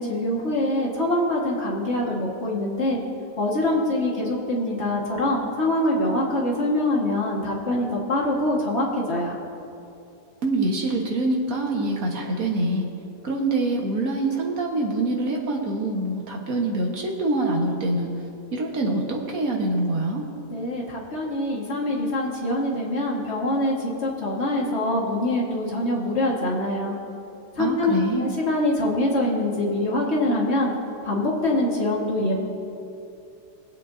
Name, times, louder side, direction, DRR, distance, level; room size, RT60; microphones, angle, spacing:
voice 1, 0.0-3.0 3.4-9.3 20.5-27.0 27.6-27.9 28.2-30.7 31.0-32.3, left 1 dB, 45° left, -3 dB, 2.0 m, -24 dB
voice 2, 10.4-12.9 13.2-18.1 18.5-20.2 27.6-28.3, right 2 dB, 60° right, 0 dB, 1.9 m, -25 dB
24.0 x 8.1 x 2.7 m, 2.7 s
omnidirectional pair, 1.7 m